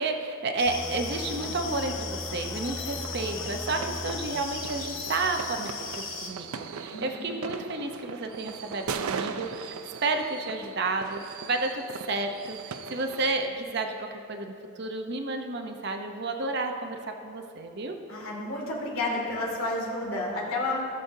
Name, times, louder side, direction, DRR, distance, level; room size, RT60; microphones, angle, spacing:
voice 1, 0.0-5.7 6.2-18.0, right 3 dB, 50° right, 4 dB, 0.7 m, -31 dB
sound 1, 0.6-6.3, left 7 dB, 60° left, 0.8 m, -38 dB
sound 2, 0.7-6.0 6.4-6.6, equal, 10° left, 0.5 m, -40 dB
sound 3, 3.0-13.3, right 6 dB, 90° right, 0.4 m, -39 dB
voice 2, 6.9-7.3 18.1-20.8, left 2 dB, 80° left, -3 dB, 2.4 m, -31 dB
17.5 x 6.4 x 2.7 m, 2.8 s
head